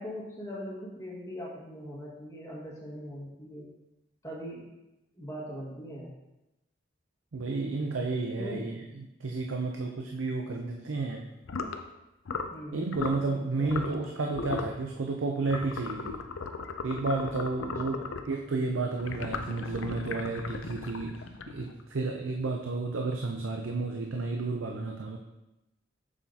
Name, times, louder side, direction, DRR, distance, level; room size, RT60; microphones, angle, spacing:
voice 1, 0.0-3.7 4.2-4.7 5.1-6.1 8.4-8.7 12.5-13.0 13.6-14.1 17.8-18.0, equal, 15° left, -5 dB, 1.7 m, -40 dB
voice 2, 7.3-11.3 12.7-16.2 16.8-25.2, right 3 dB, 85° right, 1 dB, 0.6 m, -32 dB
sound 1, 11.5-11.8 12.3-12.6 12.9-13.2 13.7-14.1 14.3-14.8 15.5-18.3 19.0-21.8, left 4 dB, 85° left, 0.5 m, -37 dB
7.1 x 6.6 x 2.8 m, 0.97 s
head